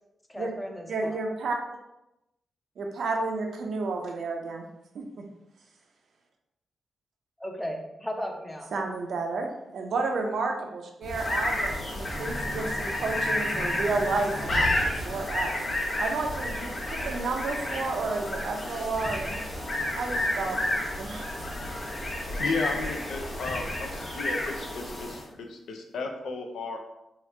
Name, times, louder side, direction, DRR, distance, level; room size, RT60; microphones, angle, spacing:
voice 1, 0.3-1.2 7.4-8.7, equal, 10° left, 2 dB, 0.6 m, -35 dB
voice 2, 0.9-1.6 2.8-4.7 4.9-5.2 8.7-14.8 15.1-15.5 16.0-19.4 20.0-20.6 21.0-21.3, right 3 dB, 75° right, 3 dB, 0.5 m, -31 dB
sound 1, 11.0-25.3, left 1 dB, 65° left, 0.9 m, -31 dB
voice 3, 22.4-26.8, left 4 dB, 85° left, 3 dB, 0.4 m, -34 dB
2.9 x 2.4 x 3.2 m, 0.89 s
cardioid pair, 75°, 0 cm